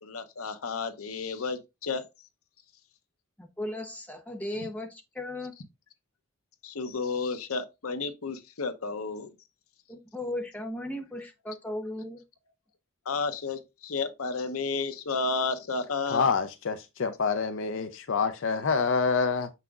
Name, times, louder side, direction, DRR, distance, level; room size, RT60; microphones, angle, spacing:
voice 1, 0.0-2.0 4.6-4.7 6.6-9.3 13.1-16.3, left 4 dB, 90° left, 0.8 m, -32 dB
voice 2, 3.4-5.5 9.9-12.2, left 1 dB, 5° left, 1.0 m, -36 dB
voice 3, 16.1-19.5, left 5 dB, 60° left, 0.5 m, -27 dB
6.9 x 5.7 x 2.4 m
head